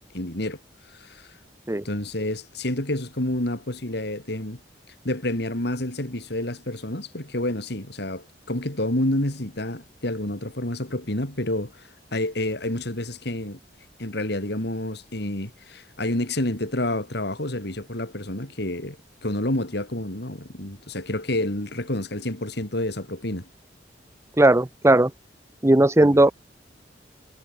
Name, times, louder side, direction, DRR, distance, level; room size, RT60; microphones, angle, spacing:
voice 1, 0.1-0.6 0.9-1.3 1.8-4.6 5.0-13.6 14.0-19.0 19.2-23.5 26.0-26.2, left 1 dB, 65° left, 3.7 m, -29 dB
voice 2, 24.4-25.1 25.6-26.3, right 1 dB, 15° right, 0.7 m, -17 dB
head